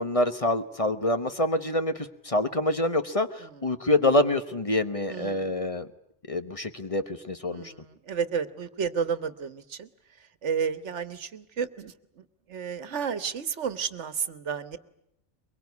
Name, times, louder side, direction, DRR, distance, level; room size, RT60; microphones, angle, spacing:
voice 1, 0.0-5.9 6.3-7.7, left 1 dB, 30° left, 9 dB, 1.1 m, -26 dB
voice 2, 5.1-5.5 7.5-9.9 10.4-11.9 12.5-14.8, right 6 dB, 75° right, 14 dB, 1.5 m, -31 dB
23.0 x 23.0 x 9.4 m, 0.76 s
omnidirectional pair, 1.2 m